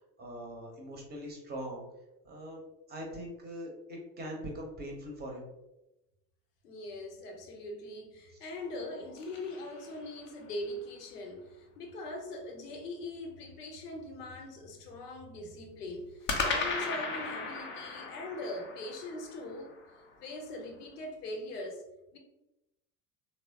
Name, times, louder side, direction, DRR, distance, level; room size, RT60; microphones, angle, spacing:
voice 1, 0.2-1.8 2.2-5.5, equal, 20° right, 0 dB, 0.7 m, -42 dB
voice 2, 6.6-19.7 20.2-21.8 22.1-22.2, left 1 dB, 70° left, 3 dB, 0.7 m, -41 dB
sound 1, 8.6-10.5 16.3-20.5, left 4 dB, 25° left, 0.4 m, -37 dB
3.1 x 2.0 x 2.8 m, 0.94 s
figure-of-eight pair, 65°, 48 cm